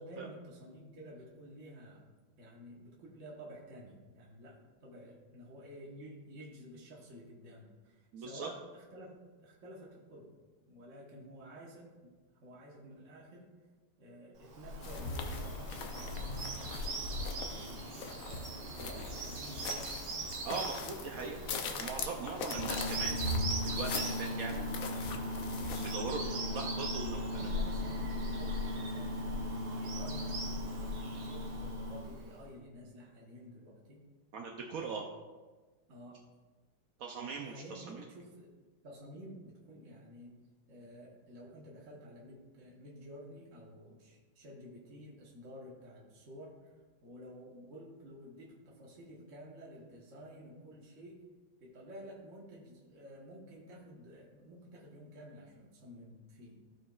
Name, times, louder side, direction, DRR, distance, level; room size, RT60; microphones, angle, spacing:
voice 1, 0.0-2.0 2.4-10.3 10.6-12.1 12.4-13.5 14.0-15.8 17.4-18.2 18.7-19.9 26.5-26.6 27.1-34.0 34.7-35.0 35.9-36.2 37.3-38.5 38.8-40.4 40.7-46.5 47.0-51.2 51.6-56.6, equal, 40° right, -4 dB, 1.4 m, -51 dB
voice 2, 8.1-8.5 19.0-19.1 20.4-21.4 21.8-23.2 23.7-24.6 25.8-27.5 34.3-35.0 37.0-38.0, right 4 dB, 80° right, 1 dB, 0.7 m, -40 dB
Bird vocalization bird call bird song, 14.4-32.4, equal, 60° right, 1.6 m, -41 dB
sound 1, 14.8-25.9, left 3 dB, 70° left, 0.8 m, -41 dB
sound 2, 22.5-32.0, left 1 dB, 50° left, 2.7 m, -39 dB
14.5 x 4.9 x 2.4 m, 1.3 s
omnidirectional pair, 2.3 m